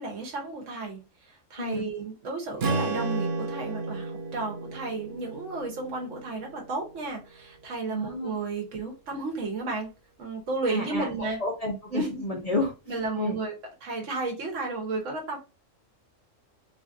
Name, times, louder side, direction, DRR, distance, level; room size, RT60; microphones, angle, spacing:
voice 1, 0.0-9.9 10.2-11.4 11.9-12.2 12.9-13.5 13.8-15.4, right 3 dB, 75° right, 1.2 m, -33 dB
Strum, 2.6-6.9, right 3 dB, 60° right, 0.8 m, -32 dB
voice 2, 7.9-8.3 10.7-13.4, left 2 dB, 50° left, 0.4 m, -31 dB
3.2 x 2.4 x 2.5 m
omnidirectional pair, 1.3 m